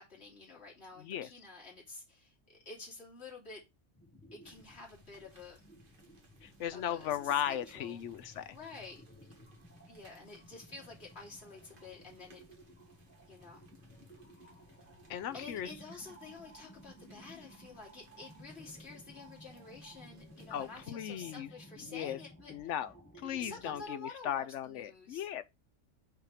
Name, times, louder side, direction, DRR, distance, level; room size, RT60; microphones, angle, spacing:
voice 1, 0.0-3.6 4.3-5.6 6.7-9.0 9.8-12.4 13.3-13.7 15.3-22.5 23.4-25.3, left 3 dB, 55° left, 3.4 m, -50 dB
voice 2, 1.0-1.3 6.4-8.6 15.1-15.7 20.5-21.5 21.8-22.2 22.5-22.9 23.2-25.4, left 10 dB, 75° left, 1.0 m, -37 dB
sound 1, 3.9-23.9, right 1 dB, 10° left, 1.3 m, -56 dB
sound 2, 4.4-20.9, right 2 dB, 45° right, 1.7 m, -66 dB
5.9 x 4.4 x 4.9 m
omnidirectional pair, 1.3 m